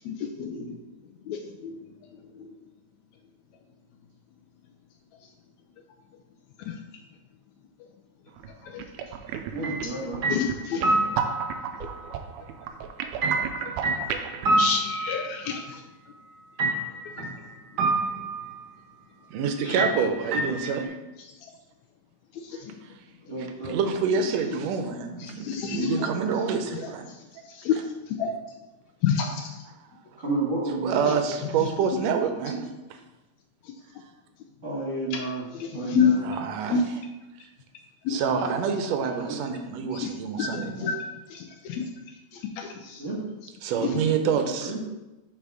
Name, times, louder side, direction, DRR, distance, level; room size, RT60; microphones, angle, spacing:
voice 1, 0.1-0.7 1.3-1.4 1.6-1.8 8.7-8.8 10.3-10.8 14.6-15.6 25.4-26.0 27.6-27.8 28.2-28.3 29.0-29.4 35.9-36.1 36.7-36.8 38.1-38.2 40.4-40.5 40.8-40.9 41.3-41.8 42.6-43.0 43.8-43.9, left 7 dB, 75° left, 2 dB, 1.9 m, -26 dB
sound 1, 8.3-8.5 8.8-14.5, right 7 dB, 90° right, 2.0 m, -33 dB
voice 2, 9.5-10.2 23.3-23.8 30.2-31.0 34.6-35.5 35.7-36.2 39.0-39.4 43.0-43.2 44.6-44.8, right 3 dB, 35° right, -6 dB, 1.4 m, -31 dB
sound 2, 9.6-9.9 10.2-11.6 13.2-15.5 16.6-17.4 17.8-18.6 19.8-20.9, right 2 dB, 55° right, 1.2 m, -27 dB
voice 3, 19.3-20.9 23.6-27.1 29.7-29.8 30.8-33.0 36.2-37.0 38.1-40.9 43.6-44.7, right 6 dB, 75° right, 6 dB, 1.8 m, -27 dB
7.8 x 4.1 x 4.8 m, 1.0 s
omnidirectional pair, 3.4 m